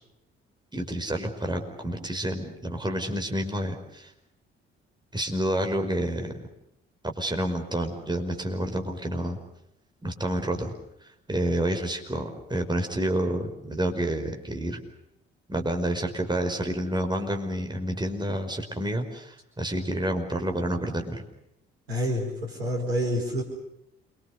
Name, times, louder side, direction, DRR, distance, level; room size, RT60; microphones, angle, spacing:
voice 1, 0.7-4.1 5.1-6.3 7.2-9.4 10.0-10.7 11.3-14.8 15.5-21.2, right 1 dB, 15° right, 4 dB, 5.2 m, -29 dB
voice 2, 21.9-23.4, equal, 85° right, 0 dB, 4.7 m, -28 dB
28.0 x 24.0 x 6.7 m, 0.81 s
figure-of-eight pair, 45°, 30 cm